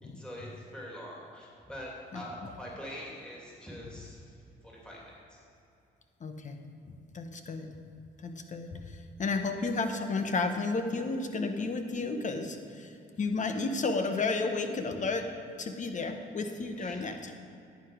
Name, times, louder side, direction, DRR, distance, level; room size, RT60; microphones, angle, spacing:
voice 1, 0.0-4.2 4.6-5.4 16.8-17.0, equal, 5° left, -5 dB, 2.6 m, -44 dB
voice 2, 6.2-6.6 6.8-7.8 8.2-15.3 15.6-17.3, left 3 dB, 40° left, 6 dB, 1.1 m, -32 dB
10.5 x 8.2 x 5.0 m, 2.7 s
cardioid pair, 90°, 20 cm